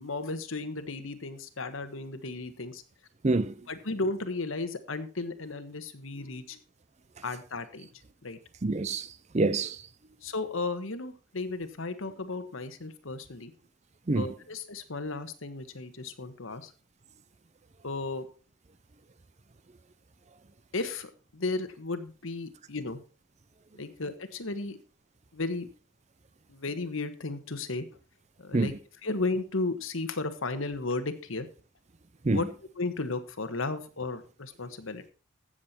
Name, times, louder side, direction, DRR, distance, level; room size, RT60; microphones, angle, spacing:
voice 1, 0.0-2.8 3.7-6.6 7.2-7.9 8.2-8.4 10.2-13.5 14.1-16.7 17.8-18.3 20.7-23.0 23.7-24.8 25.3-25.7 26.5-27.8 28.4-28.7 29.0-31.5 32.3-32.5 32.8-35.0, left 3 dB, 80° left, 1.4 m, -34 dB
voice 2, 3.2-3.5 8.6-9.8 14.1-14.3 28.5-28.8 32.2-32.4, right 2 dB, 35° right, 0.5 m, -27 dB
15.0 x 7.6 x 4.3 m
head